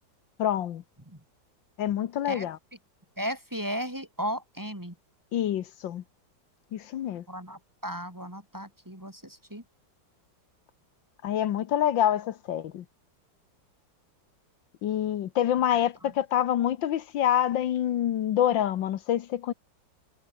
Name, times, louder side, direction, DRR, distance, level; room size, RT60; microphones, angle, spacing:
voice 1, 0.4-0.8 1.8-2.6 5.3-6.0 6.7-7.2 11.2-12.8 14.8-19.5, left 11 dB, 80° left, 1.7 m, -26 dB
voice 2, 3.2-5.0 7.3-9.6 16.0-16.1, equal, 10° right, 3.3 m, -35 dB
omnidirectional pair, 2.0 m